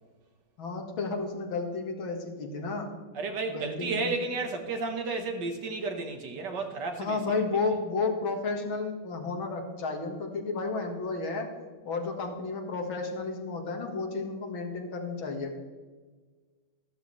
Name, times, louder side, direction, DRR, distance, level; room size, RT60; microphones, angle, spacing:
voice 1, 0.6-2.9 3.5-4.1 7.0-11.5 11.9-15.6, left 3 dB, 75° left, 2 dB, 2.5 m, -32 dB
voice 2, 3.1-7.2, right 3 dB, 60° right, 5 dB, 1.9 m, -32 dB
13.5 x 13.0 x 3.2 m, 1.4 s
omnidirectional pair, 2.2 m